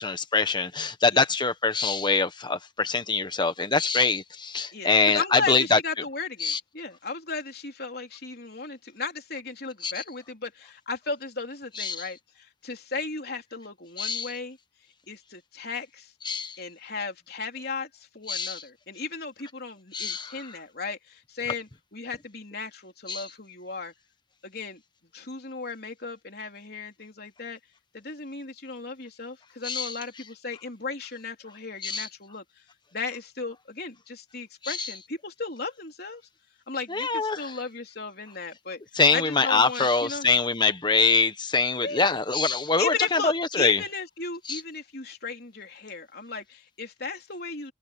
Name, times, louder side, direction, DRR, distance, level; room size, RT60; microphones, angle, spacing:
voice 1, 0.0-5.8 6.4-6.6 9.8-9.9 11.8-12.0 14.0-14.3 16.2-16.6 18.3-18.6 19.9-20.3 23.1-23.2 29.6-30.0 31.8-32.1 34.6-34.9 36.9-37.5 38.9-43.8 44.5-44.6, left 4 dB, 25° left, 1.4 m, -24 dB
voice 2, 4.7-14.6 15.1-16.1 16.6-23.9 24.4-24.8 25.1-27.6 27.9-32.4 32.9-36.2 36.7-38.8 39.1-40.3 41.8-42.2 42.8-47.7, left 4 dB, 60° left, 3.8 m, -35 dB
open air
head